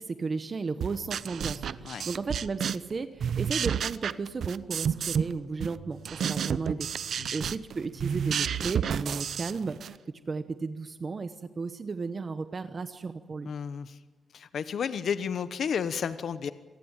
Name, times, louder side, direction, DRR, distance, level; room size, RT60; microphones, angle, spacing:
voice 1, 0.0-6.9 7.3-10.0 10.3-13.5, right 4 dB, 30° right, 10 dB, 0.9 m, -34 dB
sound 1, 0.8-2.9 3.2-5.3 5.6-10.0, right 8 dB, 60° right, 0.7 m, -31 dB
voice 2, 13.4-14.0 14.3-16.5, left 7 dB, 55° left, 12 dB, 0.9 m, -32 dB
27.0 x 18.5 x 8.9 m, 1.3 s
wide cardioid pair, 155°, 0 cm